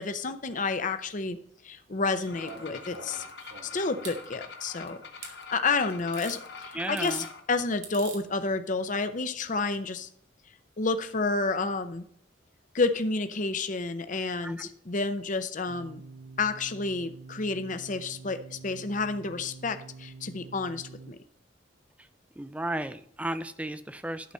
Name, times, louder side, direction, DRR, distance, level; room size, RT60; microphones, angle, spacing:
voice 1, 0.0-1.4 1.6-3.2 3.6-10.1 10.8-12.0 12.7-16.0 16.4-21.2, left 3 dB, 40° left, 10 dB, 0.7 m, -30 dB
sound 1, 2.2-4.2 5.2-5.3 6.1-6.4 6.8-7.3 7.8-8.2 9.5-9.6, right 5 dB, 90° right, 2.4 m, -45 dB
sound 2, 2.3-7.4, left 4 dB, 60° left, 1.1 m, -45 dB
voice 2, 6.7-7.3 14.4-14.7 22.4-24.3, right 1 dB, 5° right, 12 dB, 0.4 m, -34 dB
sound 3, 15.7-21.1, right 3 dB, 65° right, 0.5 m, -47 dB
11.5 x 4.1 x 6.3 m, 0.66 s
head